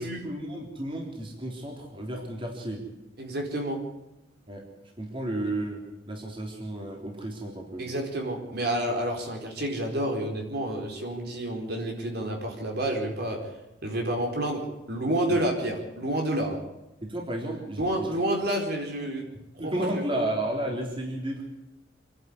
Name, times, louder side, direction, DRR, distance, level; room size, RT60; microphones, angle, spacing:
voice 1, 0.0-2.8 4.5-4.6 5.0-5.8 6.1-7.9 15.3-15.5 17.0-18.3 19.6-21.5, right 1 dB, 30° right, 0 dB, 3.6 m, -33 dB
voice 2, 3.2-3.8 7.8-13.4 13.8-16.6 17.8-19.3 19.5-20.2, right 1 dB, 60° right, 2 dB, 4.4 m, -29 dB
26.5 x 11.0 x 9.7 m, 0.96 s
head